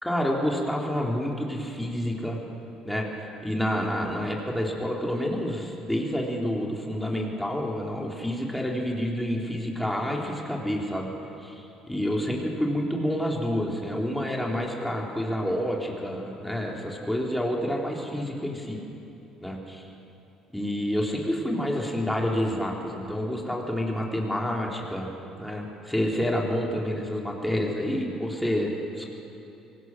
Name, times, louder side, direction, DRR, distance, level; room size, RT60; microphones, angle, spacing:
voice 1, 0.0-2.4 2.8-3.1 3.4-11.1 11.4-18.8 19.4-19.9 20.5-25.1 25.4-29.1, equal, 5° left, -1 dB, 3.9 m, -28 dB
25.5 x 18.0 x 6.3 m, 2.9 s
hypercardioid pair, 55°, 0 cm